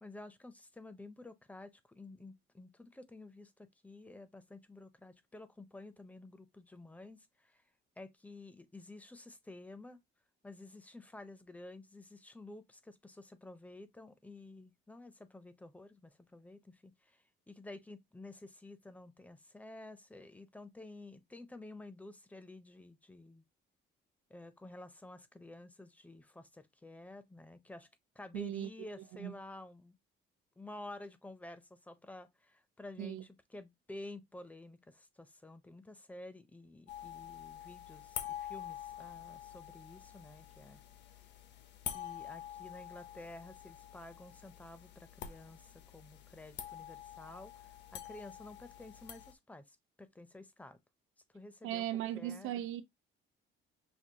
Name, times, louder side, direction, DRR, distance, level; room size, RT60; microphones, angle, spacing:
voice 1, 0.0-7.6 8.0-10.0 10.4-23.4 24.3-27.9 28.1-30.0 30.6-40.8 41.9-50.8 51.3-52.5, left 2 dB, 5° left, 0.5 m, -51 dB
voice 2, 28.3-28.7 29.2-29.3 33.0-33.2 51.6-52.8, right 12 dB, 80° right, 0.7 m, -37 dB
sound 1, 36.9-49.3, left 10 dB, 60° left, 0.6 m, -47 dB
6.1 x 2.3 x 2.7 m
cardioid pair, 145°, 20 cm